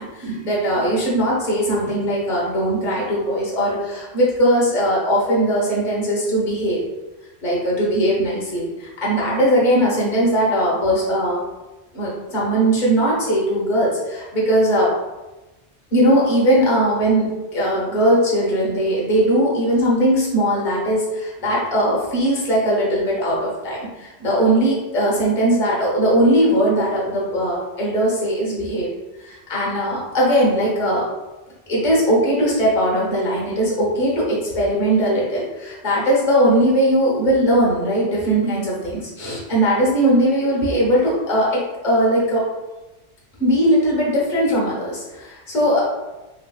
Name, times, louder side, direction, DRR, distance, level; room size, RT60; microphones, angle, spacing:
voice 1, 0.0-6.8 7.4-11.4 11.9-14.9 15.9-28.9 29.2-31.0 31.7-42.4 43.4-45.8, right 1 dB, 40° left, -5 dB, 1.1 m, -19 dB
3.3 x 3.1 x 2.3 m, 1.1 s
omnidirectional pair, 1.2 m